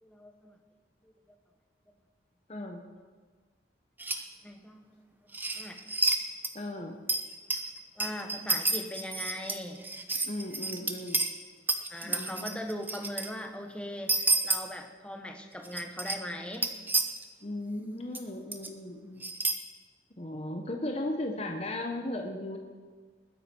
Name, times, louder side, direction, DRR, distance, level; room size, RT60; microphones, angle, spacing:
voice 1, 0.0-0.6 1.0-1.1 4.4-5.1 5.5-5.8 7.9-9.8 11.9-16.7, equal, 5° left, 4 dB, 1.3 m, -40 dB
voice 2, 2.5-2.9 6.5-7.0 10.2-11.2 12.0-12.6 17.4-19.3 20.2-22.6, left 1 dB, 35° left, 3 dB, 1.1 m, -36 dB
sound 1, 4.0-4.2 5.3-6.2 6.4-6.5 7.1-11.3 11.7-13.3 14.1-14.6 15.6-16.2 16.5-17.2 18.1-18.2 18.5-18.7 19.2-19.5, right 3 dB, 10° right, 0.8 m, -29 dB
21.0 x 10.0 x 4.6 m, 1.5 s
head